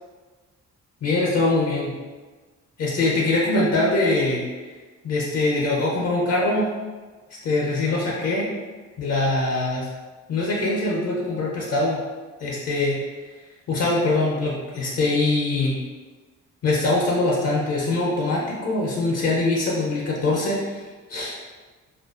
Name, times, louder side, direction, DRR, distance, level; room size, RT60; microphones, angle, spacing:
voice 1, 1.0-1.9 2.8-4.7 5.0-6.7 7.4-8.5 9.0-9.9 10.3-12.0 12.4-13.0 13.7-15.7 16.6-20.8 21.1-21.4, left 2 dB, 55° left, -4 dB, 0.6 m, -23 dB
2.5 x 2.2 x 2.3 m, 1.3 s
cardioid pair, 90°, 30 cm